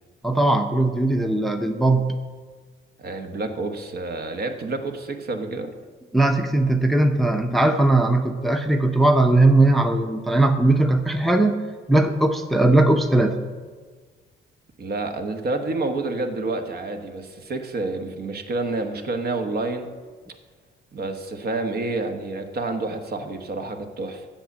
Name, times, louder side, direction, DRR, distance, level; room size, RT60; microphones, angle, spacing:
voice 1, 0.2-2.2 6.1-11.5 11.9-13.4, right 2 dB, ahead, 6 dB, 0.7 m, -19 dB
voice 2, 3.0-5.7 14.8-19.9 20.9-24.3, right 2 dB, 50° right, 6 dB, 1.1 m, -29 dB
7.8 x 7.2 x 7.2 m, 1.5 s
cardioid pair, 90°, 20 cm